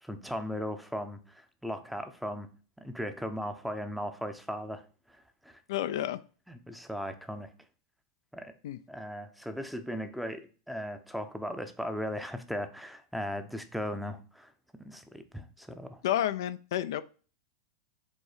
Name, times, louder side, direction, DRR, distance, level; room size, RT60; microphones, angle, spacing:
voice 1, 0.0-2.5 2.8-4.8 5.1-5.6 6.5-7.5 8.3-8.5 8.9-14.5 14.8-16.0, equal, ahead, 9 dB, 0.7 m, -37 dB
voice 2, 5.7-6.2 8.6-8.8 16.0-17.0, left 12 dB, 75° left, 12 dB, 0.4 m, -30 dB
5.3 x 3.6 x 4.9 m, 0.38 s
hypercardioid pair, 125°, 2 cm